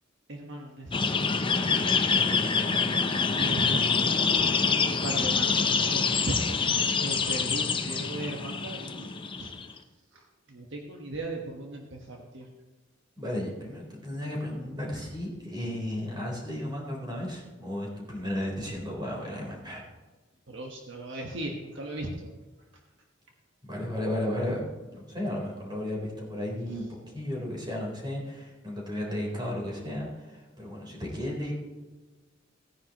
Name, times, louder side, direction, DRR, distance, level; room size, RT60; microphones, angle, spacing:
voice 1, 0.3-1.4 1.7-2.4 3.3-4.5 4.8-9.5 10.1-12.5 20.5-22.3, right 1 dB, 65° right, 1 dB, 1.3 m, -38 dB
sound 1, 0.9-9.7, left 5 dB, 25° left, 0.7 m, -26 dB
voice 2, 13.2-19.8 23.6-24.7 24.9-31.5, left 1 dB, 25° right, -2 dB, 3.8 m, -34 dB
17.5 x 10.0 x 3.0 m, 1.2 s
head